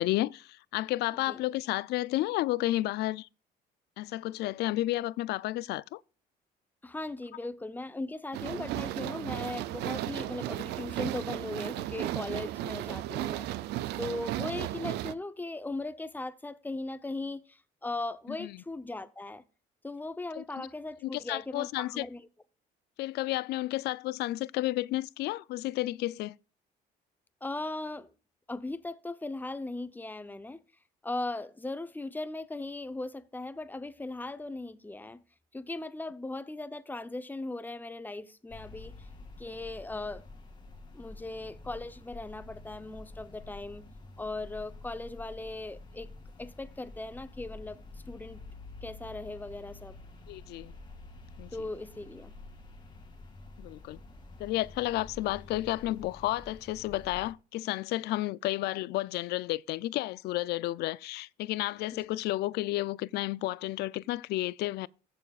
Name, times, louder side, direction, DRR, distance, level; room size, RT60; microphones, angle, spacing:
voice 1, 0.0-3.3 4.0-6.0 18.4-18.6 20.4-20.5 21.0-22.1 23.0-26.3 50.3-50.7 51.4-51.5 53.6-54.0 54.4-64.9, left 17 dB, 75° left, 0.4 m, -32 dB
voice 2, 6.8-13.5 14.0-19.4 19.8-22.3 27.4-28.1 28.5-30.6 31.0-35.2 35.5-39.1 39.4-40.2 40.9-43.9 44.2-46.1 46.4-47.8 48.1-48.4 48.8-50.0 51.5-52.3 61.9-62.0, left 2 dB, 10° left, 0.7 m, -38 dB
sound 1, 8.3-15.1, right 14 dB, 80° right, 0.5 m, -35 dB
sound 2, 38.5-57.3, left 2 dB, 25° left, 2.1 m, -49 dB
14.5 x 7.0 x 2.4 m
cardioid pair, 110°, 17 cm